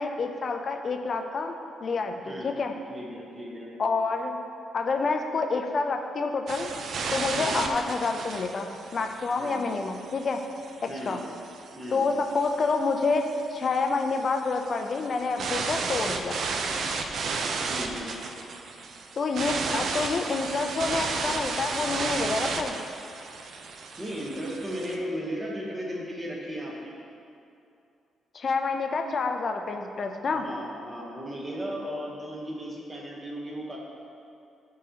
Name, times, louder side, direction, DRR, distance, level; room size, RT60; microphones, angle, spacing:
voice 1, 0.0-1.5 1.8-2.7 3.8-4.4 4.7-6.7 7.1-10.4 10.8-11.2 11.9-16.4 19.2-22.7 28.3-30.5, left 4 dB, 40° left, 5 dB, 0.4 m, -28 dB
voice 2, 2.9-3.7 7.3-7.6 9.4-9.7 10.9-11.2 11.8-12.0 17.6-18.1 24.0-26.9 30.3-33.8, equal, 15° right, -3 dB, 1.0 m, -36 dB
sound 1, 6.5-25.0, right 4 dB, 55° right, 0.4 m, -34 dB
11.0 x 3.8 x 2.8 m, 2.6 s
cardioid pair, 145°, 0 cm